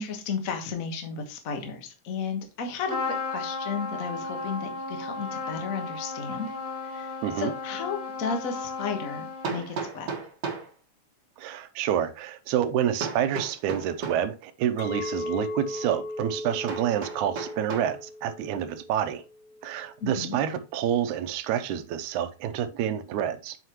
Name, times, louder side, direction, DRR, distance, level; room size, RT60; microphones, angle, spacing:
voice 1, 0.0-6.5 6.8-10.1 20.0-20.4, left 5 dB, 60° left, 0.8 m, -34 dB
Trumpet, 2.9-9.8, left 3 dB, 5° left, 1.4 m, -34 dB
Hammer, 9.4-10.7 13.0-14.3 16.7-18.0, right 5 dB, 50° right, 1.3 m, -34 dB
voice 2, 11.4-19.2 19.6-23.6, right 10 dB, 85° right, 2.0 m, -28 dB
Chink clink, 14.8-20.0, left 2 dB, 80° left, 2.5 m, -37 dB
7.9 x 5.3 x 2.9 m
omnidirectional pair, 3.6 m